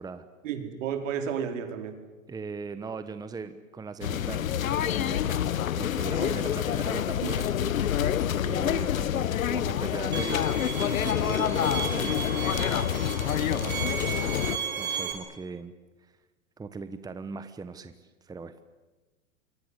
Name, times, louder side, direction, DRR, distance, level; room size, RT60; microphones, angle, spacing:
voice 1, 0.4-2.0 6.2-6.3 7.2-7.3, right 8 dB, 70° right, 6 dB, 4.4 m, -32 dB
voice 2, 2.3-7.7 8.4-10.5 10.8-12.9 13.5-14.2 14.8-15.7 16.6-17.9 18.2-18.6, right 4 dB, 10° right, 11 dB, 1.1 m, -39 dB
sound 1, 4.0-14.6, left 10 dB, 90° left, 1.1 m, -27 dB
Bowed string instrument, 10.1-15.1, right 7 dB, 25° right, 5.5 m, -34 dB
27.5 x 24.0 x 8.2 m, 1.2 s
hypercardioid pair, 120°, 40 cm